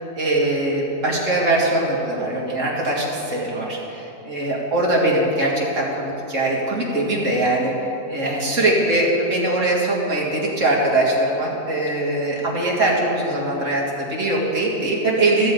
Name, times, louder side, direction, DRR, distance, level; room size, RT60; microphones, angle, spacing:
voice 1, 0.2-7.7 8.1-15.5, right 2 dB, 65° right, -3 dB, 2.6 m, -21 dB
14.0 x 14.0 x 4.0 m, 2.7 s
omnidirectional pair, 1.4 m